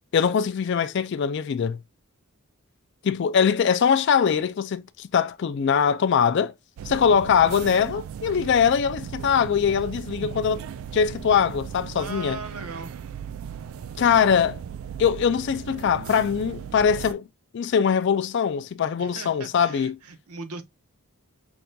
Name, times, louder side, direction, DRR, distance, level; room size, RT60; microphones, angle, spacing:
voice 1, 0.1-1.8 3.0-6.5 6.9-10.6 10.9-12.4 14.0-14.6 15.0-17.3 17.5-20.0, left 7 dB, 50° left, 0.3 m, -22 dB
sound 1, 6.8-17.1, right 8 dB, 65° right, 0.3 m, -37 dB
voice 2, 11.9-12.9 19.0-20.6, right 4 dB, 85° right, 0.8 m, -38 dB
5.9 x 2.6 x 2.3 m
head